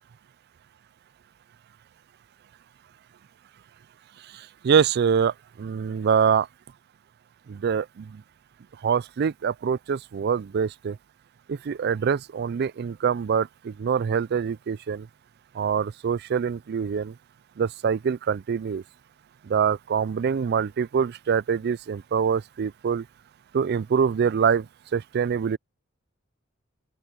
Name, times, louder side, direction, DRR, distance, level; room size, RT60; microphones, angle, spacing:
voice 1, 4.3-6.5 7.5-8.2 8.8-11.0 11.5-15.1 15.5-17.1 17.6-18.8 19.4-23.0 23.5-24.7 24.9-25.6, right 7 dB, 50° right, 0.4 m, -25 dB
open air
head